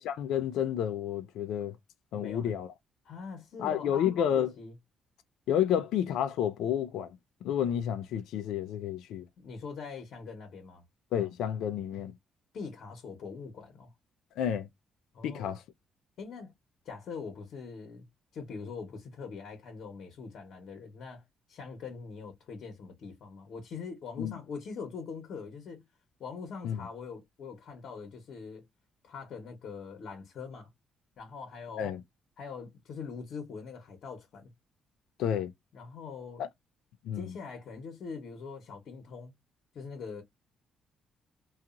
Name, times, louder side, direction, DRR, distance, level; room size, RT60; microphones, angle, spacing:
voice 1, 0.0-1.8 2.1-2.7 3.6-4.5 5.5-7.2 7.4-9.3 11.1-12.1 14.4-14.7 15.2-15.6 24.2-24.3 26.6-26.8 31.8-32.0 35.2-35.5 36.4-36.5 37.0-37.3, left 9 dB, 85° left, 0.4 m, -30 dB
voice 2, 2.1-2.6 3.0-4.8 9.4-10.8 12.5-13.9 15.1-15.6 16.2-16.5 16.8-18.1 18.3-21.2 21.5-25.8 26.2-28.7 29.0-30.7 31.2-31.9 32.4-34.5 35.7-36.5 37.1-39.3 39.7-40.2, left 5 dB, 65° left, 0.9 m, -43 dB
2.8 x 2.4 x 2.4 m
cardioid pair, 90°, 0 cm